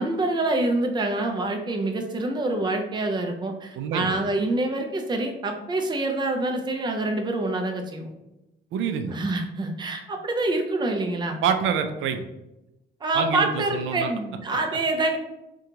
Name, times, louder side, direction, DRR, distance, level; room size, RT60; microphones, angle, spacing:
voice 1, 0.0-8.1 9.1-11.4 13.0-15.2, right 2 dB, 20° right, 3 dB, 0.5 m, -26 dB
voice 2, 3.8-4.2 8.7-9.2 11.4-12.2 13.1-14.1, right 7 dB, 75° right, 7 dB, 0.4 m, -26 dB
2.8 x 2.3 x 3.7 m, 0.96 s
cardioid pair, 90°, 20 cm